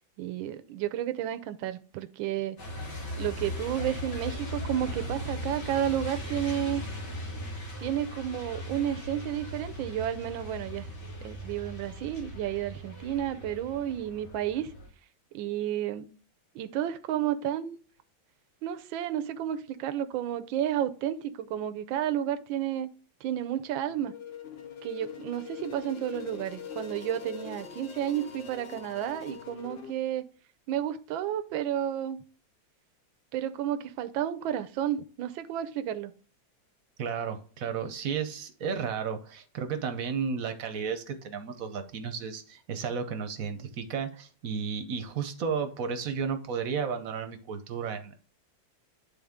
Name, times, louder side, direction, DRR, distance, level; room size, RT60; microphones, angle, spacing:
voice 1, 0.2-2.6 3.1-6.8 7.8-10.9 11.2-14.7 15.3-16.1 16.5-17.8 18.6-22.9 23.2-24.1 24.8-30.2 30.7-32.2 33.3-36.1, right 11 dB, 85° right, 1.4 m, -31 dB
Truck, 2.6-14.9, equal, 90° left, 2.8 m, -38 dB
sound 1, 23.9-29.9, left 7 dB, 65° left, 0.6 m, -43 dB
voice 2, 37.0-48.1, right 6 dB, 55° right, 1.0 m, -33 dB
10.0 x 3.8 x 3.5 m
omnidirectional pair, 2.1 m